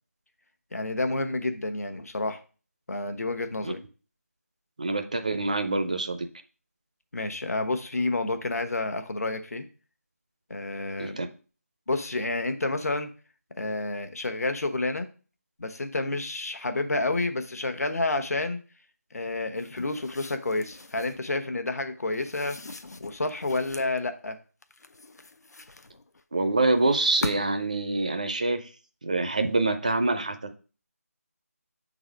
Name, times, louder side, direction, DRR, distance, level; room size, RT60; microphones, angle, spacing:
voice 1, 0.7-2.4 2.9-3.8 7.1-9.6 10.5-11.2 11.9-13.1 13.6-15.1 15.6-18.6 19.1-22.6 23.0-24.4, left 2 dB, 70° left, 7 dB, 1.0 m, -29 dB
voice 2, 4.8-6.3 11.0-11.3 26.3-28.7 29.0-30.6, right 2 dB, 30° right, 8 dB, 0.4 m, -26 dB
sound 1, 19.6-21.2 22.1-24.0 24.6-26.2 26.9-27.7, left 3 dB, 85° left, 0.6 m, -41 dB
6.0 x 4.0 x 5.0 m, 0.37 s
figure-of-eight pair, 175°, 9 cm